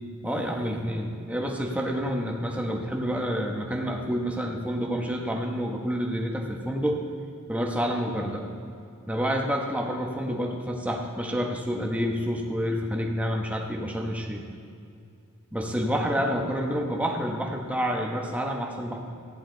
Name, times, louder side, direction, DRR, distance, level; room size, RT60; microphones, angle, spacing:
voice 1, 0.2-7.0 7.5-8.5 9.1-14.4 15.5-19.0, equal, 5° right, 1 dB, 1.1 m, -28 dB
14.0 x 10.0 x 3.9 m, 2.5 s
head